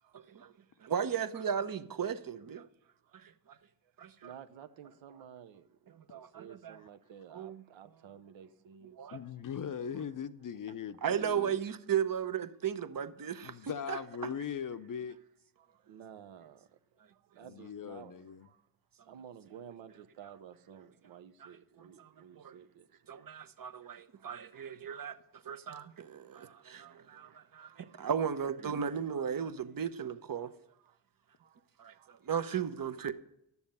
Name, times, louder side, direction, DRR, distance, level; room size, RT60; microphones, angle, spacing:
voice 1, 0.1-0.5 0.8-2.7 3.1-3.6 4.0-4.3 5.9-6.8 7.3-7.6 9.0-9.2 11.0-14.0 21.4-22.6 23.1-30.5 31.8-33.1, right 8 dB, 45° right, 0.9 m, -36 dB
voice 2, 4.2-9.2 15.6-16.7 17.1-18.2 18.4-18.6 19.0-23.1 24.2-24.3 26.9-28.0 30.8-31.0 31.4-31.7 31.9-32.2, right 8 dB, 70° right, 0.9 m, -53 dB
voice 3, 9.1-11.6 13.4-15.2 17.4-18.5, left 7 dB, 40° left, 0.7 m, -40 dB
10.5 x 7.1 x 5.5 m
supercardioid pair, 45°, 48 cm